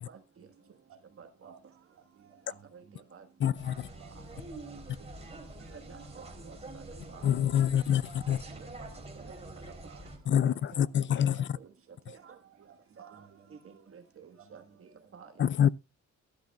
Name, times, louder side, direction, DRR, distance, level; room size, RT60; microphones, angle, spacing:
voice 1, 0.1-1.6 2.0-3.5 4.0-5.8 6.4-7.6 8.2-9.8 10.8-10.9 11.3-11.7 12.5-13.9 14.4-15.4, right 7 dB, 70° right, 2.7 m, -60 dB
voice 2, 1.2-1.5 2.7-2.8 3.1-3.2 4.2-4.3 5.9-6.8 7.1-7.3 8.8-8.9 9.2-9.3 9.8-10.0 10.4-10.8 12.1-12.3 13.0-13.2 13.6-15.5, right 6 dB, 45° right, 1.6 m, -51 dB
voice 3, 3.4-3.9 7.2-8.4 10.3-11.5 15.4-15.7, left 9 dB, 40° left, 0.4 m, -26 dB
sound 1, 3.6-10.2, right 2 dB, 20° right, 3.5 m, -46 dB
13.0 x 12.0 x 2.4 m
cardioid pair, 90°, 30 cm